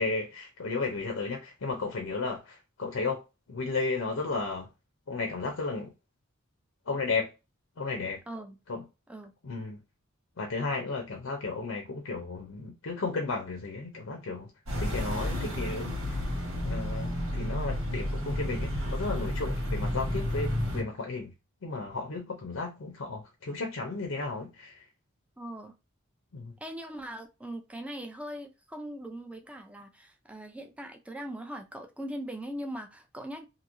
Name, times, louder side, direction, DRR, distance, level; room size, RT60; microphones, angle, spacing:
voice 1, 0.0-3.2 3.5-4.7 5.1-5.9 6.9-7.3 7.8-8.2 8.7-8.9 9.4-9.8 10.4-14.5 14.8-16.2 16.6-21.3 21.6-24.8 26.3-26.5, left 3 dB, 70° left, 0.6 m, -34 dB
voice 2, 8.3-8.6 9.1-9.3 25.4-25.7 26.6-33.4, right 1 dB, 5° right, 0.4 m, -40 dB
sound 1, 14.7-20.8, left 1 dB, 85° right, 1.5 m, -31 dB
2.9 x 2.7 x 2.6 m
head